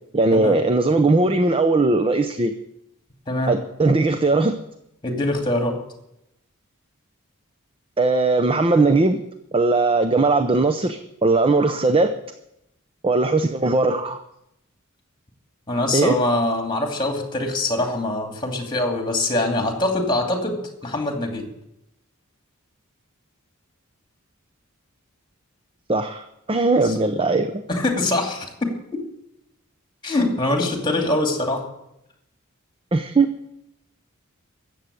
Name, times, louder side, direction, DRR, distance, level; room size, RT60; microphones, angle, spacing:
voice 1, 0.1-2.5 3.5-4.6 8.0-9.2 9.5-12.1 13.0-14.2 15.9-16.2 25.9-27.6 32.9-33.3, right 3 dB, 25° right, 9 dB, 0.6 m, -19 dB
voice 2, 5.0-5.8 15.7-21.5 26.8-27.0 27.7-28.7 30.0-31.6, left 2 dB, 20° left, 4 dB, 2.5 m, -23 dB
15.0 x 7.7 x 8.5 m, 0.83 s
head